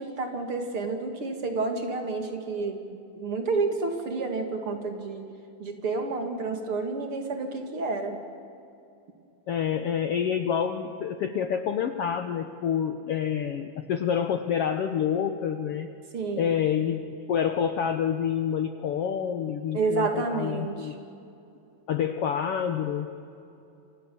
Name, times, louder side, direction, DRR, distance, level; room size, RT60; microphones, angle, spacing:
voice 1, 0.0-5.3 5.6-8.2 16.1-16.6 19.7-20.9, right 3 dB, 45° right, 4 dB, 2.8 m, -30 dB
voice 2, 9.5-15.9 16.4-21.0 21.9-23.1, left 8 dB, 65° left, 8 dB, 1.5 m, -28 dB
29.5 x 26.5 x 7.1 m, 2.7 s
omnidirectional pair, 3.7 m